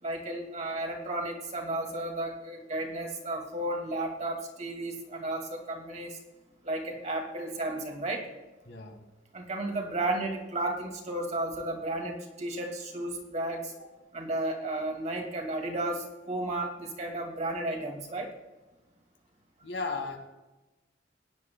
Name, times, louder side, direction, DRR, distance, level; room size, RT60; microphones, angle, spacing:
voice 1, 0.0-6.2 6.6-8.3 9.3-13.7 14.1-18.3, right 2 dB, 35° right, 2 dB, 2.1 m, -33 dB
voice 2, 8.7-9.1 13.8-13.9 19.6-20.2, left 3 dB, 75° left, 4 dB, 1.7 m, -35 dB
17.0 x 10.0 x 2.2 m, 1.1 s
head